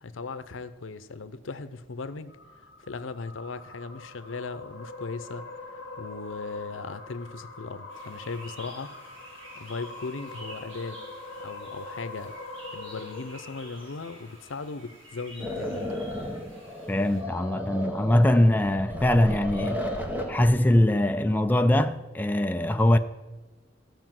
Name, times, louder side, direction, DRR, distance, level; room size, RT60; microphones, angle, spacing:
voice 1, 0.0-2.3 2.9-5.5 6.0-8.9 9.5-11.1 11.4-12.3 12.7-15.9, left 4 dB, 85° left, 0.7 m, -37 dB
sound 1, 2.3-14.8, left 2 dB, 60° left, 1.4 m, -43 dB
sound 2, 7.9-17.2, right 1 dB, 90° right, 4.4 m, -50 dB
sound 3, 15.4-20.6, equal, 10° right, 1.1 m, -34 dB
voice 2, 16.9-19.8 20.3-23.0, left 1 dB, 10° left, 0.3 m, -22 dB
14.5 x 5.1 x 7.6 m
head